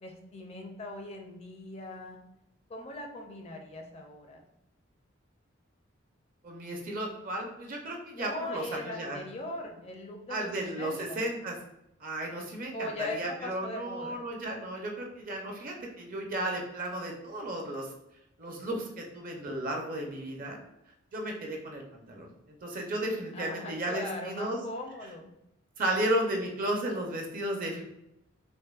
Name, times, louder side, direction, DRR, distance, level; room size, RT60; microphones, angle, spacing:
voice 1, 0.0-2.2 2.7-4.4 8.1-10.5 10.8-11.2 12.7-14.2 23.3-25.3, left 2 dB, 30° left, 3 dB, 0.4 m, -40 dB
voice 2, 6.4-9.2 10.3-11.6 12.0-17.9 18.4-20.6 21.1-24.7 25.0-25.1 25.8-27.8, right 1 dB, 45° right, 1 dB, 0.6 m, -34 dB
5.2 x 2.1 x 2.4 m, 0.83 s
head